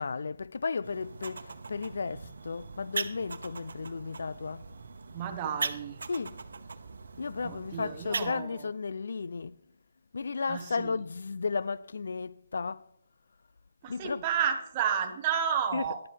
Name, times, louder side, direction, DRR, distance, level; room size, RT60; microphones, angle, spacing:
voice 1, 0.0-4.7 6.1-6.4 7.2-9.5 10.1-12.8 13.9-14.3 15.7-16.0, left 4 dB, 70° left, 0.3 m, -34 dB
sound 1, 0.8-8.3, right 4 dB, 80° right, 1.0 m, -40 dB
voice 2, 5.1-6.0 7.4-8.7 10.5-10.9 13.8-16.0, right 8 dB, 25° right, 1.1 m, -31 dB
13.0 x 11.5 x 3.3 m
hypercardioid pair, 165°, 0 cm